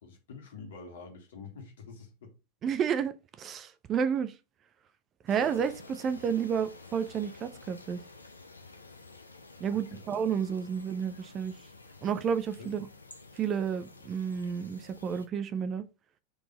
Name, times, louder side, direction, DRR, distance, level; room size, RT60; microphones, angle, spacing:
voice 1, 0.0-2.3 9.6-10.1 12.6-12.7, left 4 dB, 60° left, 1.7 m, -47 dB
voice 2, 2.6-4.4 5.2-8.0 9.6-11.5 12.0-12.9 13.3-15.9, right 7 dB, 30° right, 0.6 m, -31 dB
sound 1, 5.3-15.3, left 3 dB, 80° left, 0.7 m, -51 dB
4.7 x 3.9 x 5.1 m
figure-of-eight pair, 90°, 0 cm